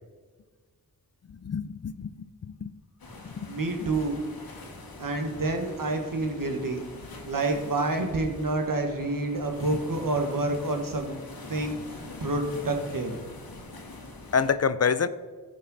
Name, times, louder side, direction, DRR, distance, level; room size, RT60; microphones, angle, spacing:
voice 1, 1.4-2.7 3.4-3.6 14.3-15.1, left 6 dB, 45° left, 14 dB, 0.5 m, -27 dB
sound 1, 3.0-14.5, left 2 dB, 90° left, 1.6 m, -44 dB
voice 2, 3.5-4.2 5.0-6.9 7.3-11.2 11.5-13.2, right 2 dB, 65° right, 4 dB, 1.6 m, -28 dB
14.5 x 5.4 x 4.2 m, 1.5 s
cardioid pair, 50°, 35 cm